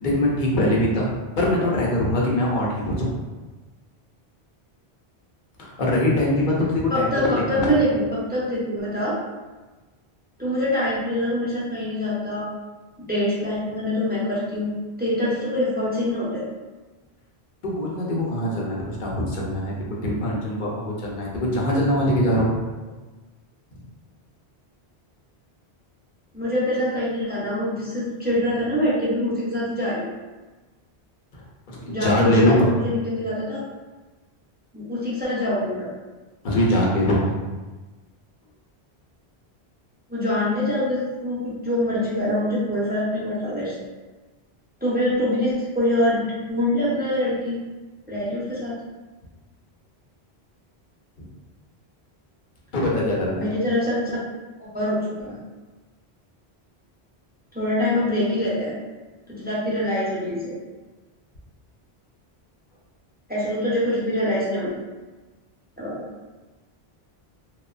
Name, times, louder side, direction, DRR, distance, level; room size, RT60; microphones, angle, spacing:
voice 1, 0.0-3.1 5.6-7.7 17.6-19.7 20.0-22.5 31.7-32.7 36.4-37.4 51.2-51.3 52.7-53.5, left 1 dB, 55° left, -4 dB, 0.7 m, -22 dB
voice 2, 6.9-9.2 10.4-12.4 13.0-14.7 15.0-16.5 26.3-30.1 31.9-33.6 34.7-35.9 40.1-43.7 44.8-47.6 48.1-48.8 53.4-54.2 54.7-55.4 57.5-58.8 59.4-60.6 63.3-64.7 65.8-66.1, left 1 dB, 15° right, -8 dB, 0.4 m, -24 dB
2.9 x 2.1 x 2.4 m, 1.2 s
omnidirectional pair, 1.1 m